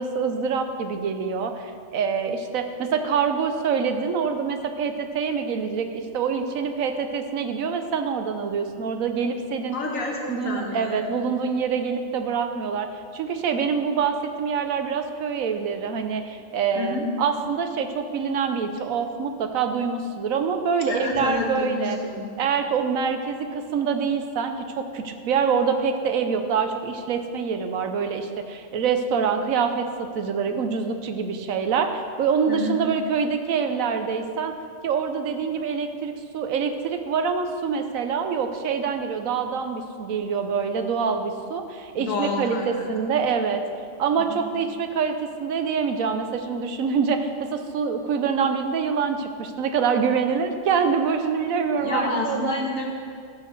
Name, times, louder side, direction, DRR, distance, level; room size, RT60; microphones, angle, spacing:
voice 1, 0.0-9.8 10.3-22.0 22.4-34.5 34.8-43.6 44.0-52.6, right 6 dB, 85° right, 7 dB, 1.2 m, -25 dB
voice 2, 9.7-11.2 16.8-17.1 20.9-22.3 32.5-32.8 42.0-43.1 44.2-44.4 51.8-52.9, left 3 dB, 75° left, -1 dB, 1.9 m, -29 dB
14.0 x 4.6 x 6.5 m, 2.2 s
omnidirectional pair, 1.4 m